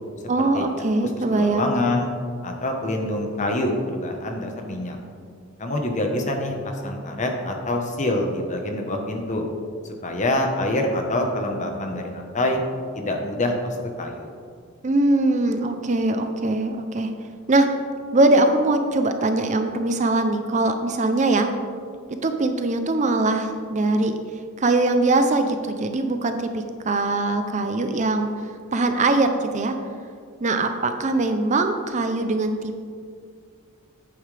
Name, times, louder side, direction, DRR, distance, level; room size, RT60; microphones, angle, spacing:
voice 1, 0.3-1.7 14.8-17.1 17.5-17.7 18.1-21.5 22.2-24.1 24.6-28.3 28.7-29.7 30.4-32.8, right 2 dB, 35° right, 7 dB, 0.5 m, -21 dB
voice 2, 1.3-2.1 2.4-5.0 5.6-9.5 10.0-12.6 12.9-14.3, left 1 dB, 35° left, 3 dB, 1.1 m, -26 dB
11.0 x 8.8 x 3.4 m, 2.1 s
head